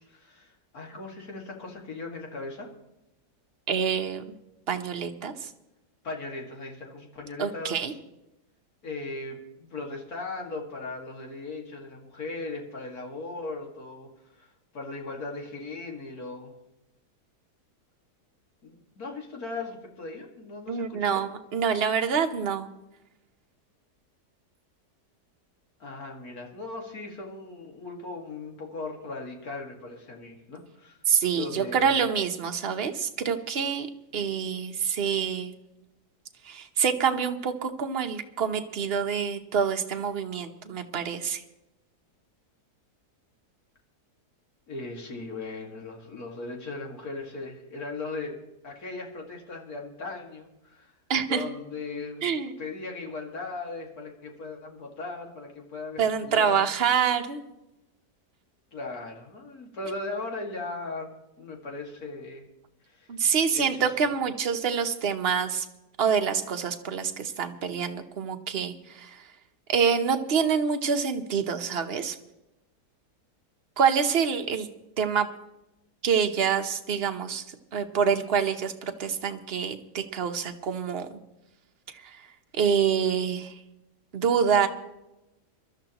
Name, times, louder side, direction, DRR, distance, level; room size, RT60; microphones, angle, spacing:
voice 1, 0.1-2.7 6.0-8.0 8.8-14.1 14.3-16.5 18.6-21.2 25.8-31.0 31.3-32.0 44.7-50.9 51.3-52.3 52.6-56.6 58.7-61.1 61.4-62.5 62.9-63.1 63.5-63.9, left 3 dB, 60° left, 1 dB, 2.5 m, -38 dB
voice 2, 3.7-4.2 4.7-5.5 7.4-7.9 20.7-22.7 31.1-33.9 34.1-35.5 36.4-41.4 51.1-51.4 52.2-52.5 56.0-57.4 63.1-65.7 66.0-69.3 69.7-72.2 73.8-74.7 75.0-75.3 76.0-77.4 77.7-81.1 81.9-82.3 82.6-83.6 84.1-84.7, right 7 dB, 45° right, 6 dB, 1.0 m, -26 dB
23.0 x 12.5 x 3.0 m, 0.94 s
omnidirectional pair, 1.8 m